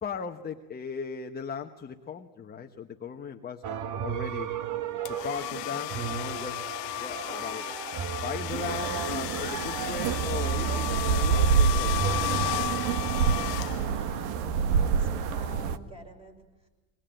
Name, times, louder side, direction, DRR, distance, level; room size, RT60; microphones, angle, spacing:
voice 1, 0.0-3.6 4.0-4.5 5.1-6.7 7.0-7.7 8.2-12.0, left 6 dB, 20° left, 3 dB, 1.2 m, -37 dB
sound 1, 3.6-13.5, right 8 dB, 40° right, 1.3 m, -34 dB
sound 2, 5.0-14.2, left 18 dB, 85° left, 0.8 m, -34 dB
sound 3, 8.5-15.8, right 6 dB, 60° right, 1.7 m, -27 dB
voice 2, 14.7-16.7, right 1 dB, 10° right, 3 dB, 6.4 m, -48 dB
24.0 x 20.0 x 9.1 m, 1.1 s
supercardioid pair, 115°, 48 cm